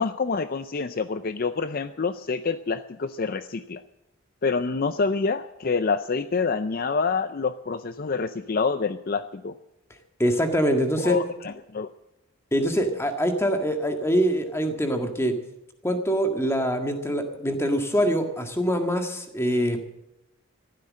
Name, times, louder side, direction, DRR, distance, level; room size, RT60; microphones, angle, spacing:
voice 1, 0.0-3.8 4.4-9.5 11.0-11.9, left 4 dB, 40° left, 11 dB, 0.5 m, -27 dB
voice 2, 10.2-11.2 12.5-15.3 15.8-19.8, equal, 10° left, 5 dB, 1.7 m, -24 dB
14.5 x 12.5 x 7.5 m, 0.94 s
head